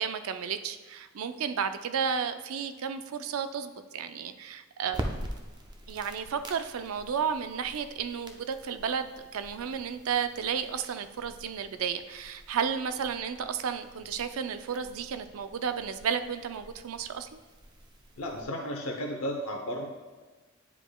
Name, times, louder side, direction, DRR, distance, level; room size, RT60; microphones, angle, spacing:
voice 1, 0.0-5.1 5.9-17.4, right 7 dB, 85° right, 10 dB, 0.4 m, -33 dB
sound 1, 4.9-18.4, right 1 dB, 20° right, 0.5 m, -45 dB
voice 2, 18.2-19.8, equal, 85° left, 1 dB, 0.7 m, -33 dB
9.6 x 4.9 x 2.3 m, 1.3 s
head